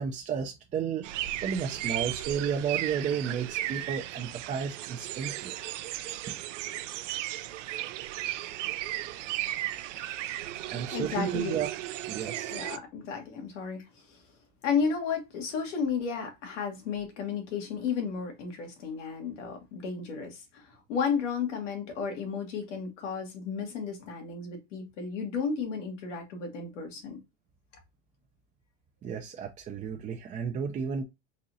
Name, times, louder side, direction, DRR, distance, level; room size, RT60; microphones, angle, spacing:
voice 1, 0.0-5.5 6.3-6.4 10.7-11.7 12.1-12.6 29.0-31.0, right 7 dB, 20° right, 0.4 m, -33 dB
sound 1, 1.0-12.8, right 15 dB, 85° right, 0.5 m, -35 dB
voice 2, 10.9-11.6 12.5-14.2 14.6-27.2, left 6 dB, 85° left, 1.6 m, -33 dB
3.9 x 3.0 x 2.6 m
supercardioid pair, 120°, 36 cm